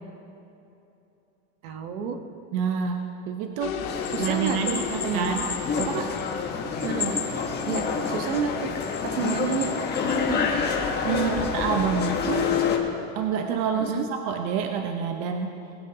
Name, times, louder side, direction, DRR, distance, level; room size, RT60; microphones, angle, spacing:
voice 1, 1.6-2.2 4.1-5.3 6.8-7.2 7.6-8.7 9.0-9.7 10.0-10.4 11.2-11.5 13.7-14.1, right 6 dB, 75° right, 5 dB, 1.5 m, -30 dB
voice 2, 2.5-5.5 5.8-6.1 11.0-12.5 13.1-15.6, right 6 dB, 50° right, 5 dB, 1.0 m, -28 dB
sound 1, 3.6-10.3, left 8 dB, 90° left, 1.2 m, -38 dB
sound 2, 3.8-12.8, left 5 dB, 25° left, 1.3 m, -28 dB
Bell, 4.0-6.4 6.8-8.3 8.8-10.2, left 5 dB, 5° left, 2.0 m, -34 dB
20.5 x 10.0 x 2.9 m, 2.8 s
supercardioid pair, 145°, 41 cm